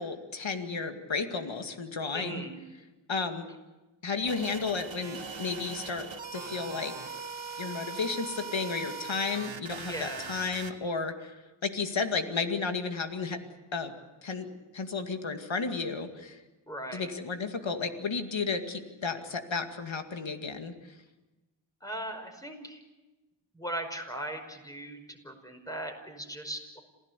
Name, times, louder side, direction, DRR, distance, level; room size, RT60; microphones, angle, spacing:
voice 1, 0.0-2.4 3.1-3.5 4.0-6.9 7.6-11.3 11.6-13.4 13.7-13.9 14.2-14.5 14.7-16.4 16.9-20.7, left 4 dB, 80° left, 6 dB, 2.3 m, -33 dB
voice 2, 2.1-2.5 9.9-10.3 16.7-17.1 21.8-22.8 23.5-26.8, right 1 dB, 10° left, 4 dB, 5.4 m, -39 dB
sound 1, 4.3-10.7, right 5 dB, 75° right, 1.8 m, -40 dB
27.5 x 17.0 x 8.3 m, 1.1 s
wide cardioid pair, 55°, 46 cm